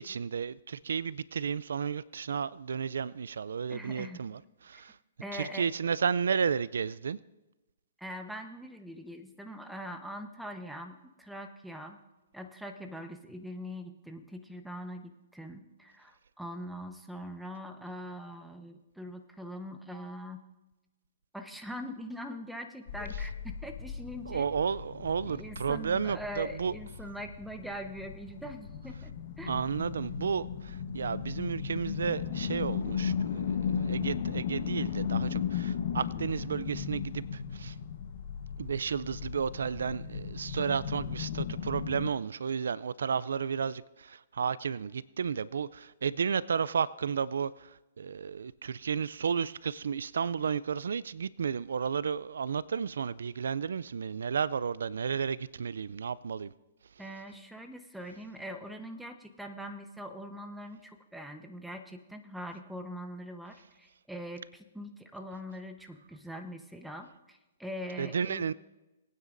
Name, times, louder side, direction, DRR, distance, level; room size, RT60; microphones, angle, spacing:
voice 1, 0.0-5.0 5.3-7.2 24.3-26.7 29.5-37.8 38.6-56.5 68.0-68.5, right 6 dB, 80° right, 0.3 m, -32 dB
voice 2, 3.7-4.2 5.2-5.7 8.0-12.0 12.3-20.4 21.3-24.5 25.2-29.6 57.0-68.5, equal, ahead, 1.0 m, -42 dB
sound 1, 22.9-42.1, left 7 dB, 55° left, 1.1 m, -36 dB
21.0 x 9.4 x 2.6 m
hypercardioid pair, 135°, 0 cm